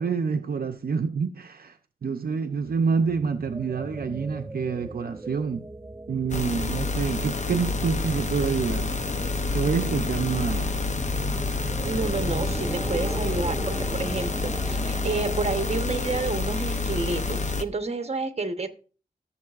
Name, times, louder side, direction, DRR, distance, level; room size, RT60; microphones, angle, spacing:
voice 1, 0.0-1.8 2.0-5.6 6.1-9.1 9.5-10.8, right 5 dB, 70° right, 0.6 m, -27 dB
sound 1, 2.6-16.8, right 2 dB, 15° right, 0.4 m, -38 dB
sound 2, 6.3-17.6, left 3 dB, 45° left, 0.7 m, -28 dB
voice 2, 11.8-18.7, right 3 dB, 40° right, 1.0 m, -30 dB
15.0 x 7.1 x 2.4 m
wide cardioid pair, 75°, 16 cm